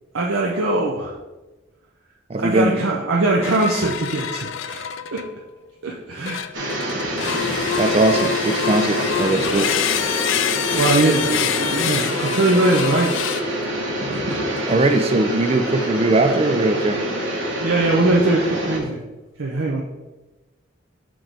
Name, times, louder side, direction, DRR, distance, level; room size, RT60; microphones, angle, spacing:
voice 1, 0.1-1.1 2.4-5.2 5.8-6.7 10.7-13.1 17.6-19.0 19.4-19.9, right 2 dB, 85° right, -2 dB, 0.7 m, -21 dB
voice 2, 2.3-2.8 7.8-9.7 14.7-17.0, right 2 dB, 30° right, 8 dB, 0.4 m, -20 dB
sound 1, 3.4-5.4 6.3-13.7 14.5-14.8, left 9 dB, 70° left, 0.3 m, -26 dB
sound 2, 6.5-18.8, right 1 dB, 65° right, 1.4 m, -26 dB
6.1 x 4.7 x 3.9 m, 1.1 s
head